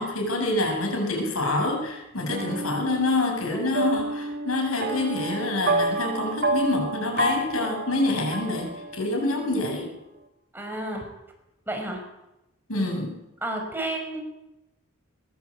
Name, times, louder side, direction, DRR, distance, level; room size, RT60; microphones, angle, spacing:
voice 1, 0.0-9.8 12.7-13.1, left 2 dB, 85° left, 3 dB, 7.6 m, -26 dB
sound 1, 2.3-9.3, right 2 dB, 50° right, 2.2 m, -30 dB
voice 2, 3.5-3.9 9.3-9.5 10.5-11.1 11.7-12.0 13.4-14.2, right 1 dB, 10° right, 2 dB, 5.6 m, -32 dB
22.5 x 21.5 x 8.7 m, 0.94 s
head